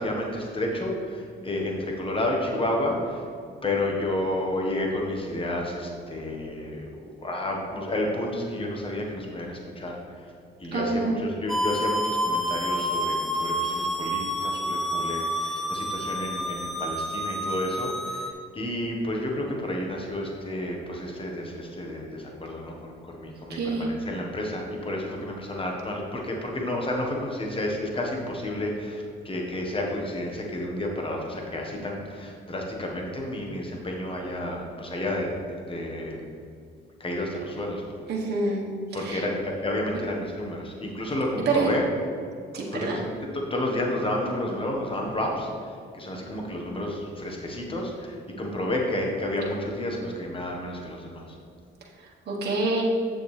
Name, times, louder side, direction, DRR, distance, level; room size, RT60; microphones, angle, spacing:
voice 1, 0.0-3.2 3.6-6.9 7.2-9.9 10.6-36.2 37.0-37.9 38.9-41.8 42.7-43.0 43.5-45.5 46.0-51.2, left 1 dB, 25° left, 0 dB, 1.4 m, -30 dB
voice 2, 10.7-11.2 23.5-23.9 38.1-38.6 38.9-39.2 41.4-41.7 42.5-43.0 52.0-52.8, right 3 dB, 55° right, -3 dB, 1.4 m, -27 dB
sound 1, 11.5-18.3, equal, ahead, 0.6 m, -29 dB
7.7 x 6.9 x 3.4 m, 2.3 s
cardioid pair, 90°, 20 cm